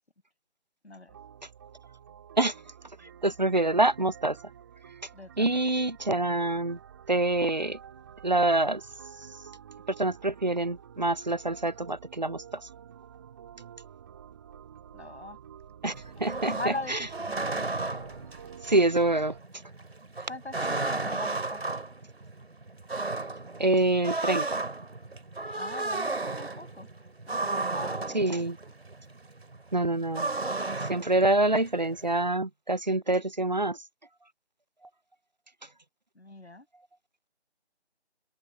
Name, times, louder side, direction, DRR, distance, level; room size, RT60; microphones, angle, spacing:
voice 1, 0.8-1.2 5.1-5.6 14.9-15.4 16.2-17.8 20.3-21.8 25.6-26.9 27.3-28.5 36.1-36.7, left 2 dB, 75° left, 7.2 m, -41 dB
sound 1, 1.1-19.4, right 9 dB, 20° right, 3.9 m, -50 dB
voice 2, 3.2-4.4 5.4-6.8 7.1-7.8 8.2-8.8 10.0-12.4 15.8-15.9 16.2-17.0 18.6-19.3 23.6-24.6 28.1-28.6 29.7-30.3 30.9-33.8, right 2 dB, 40° right, 0.5 m, -26 dB
sound 2, 15.9-32.3, right 3 dB, 60° right, 3.3 m, -34 dB
open air
figure-of-eight pair, 165°, 33 cm